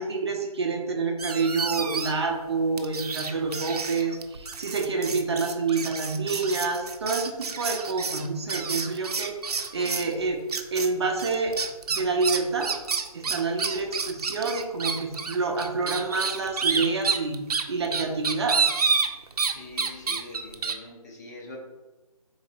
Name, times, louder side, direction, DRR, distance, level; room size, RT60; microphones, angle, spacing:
voice 1, 0.0-9.3 9.7-10.4 10.7-11.6 11.9-12.7 13.1-17.4 17.7-18.6, right 4 dB, 45° right, 2 dB, 0.7 m, -28 dB
sound 1, 1.2-2.3 2.8-10.1 10.5-10.9 11.2-19.5 19.8-20.7, right 5 dB, 90° right, 0.6 m, -29 dB
voice 2, 19.5-21.6, left 2 dB, 30° left, -1 dB, 0.9 m, -43 dB
3.9 x 3.0 x 4.4 m, 1.2 s
hypercardioid pair, 165°, 19 cm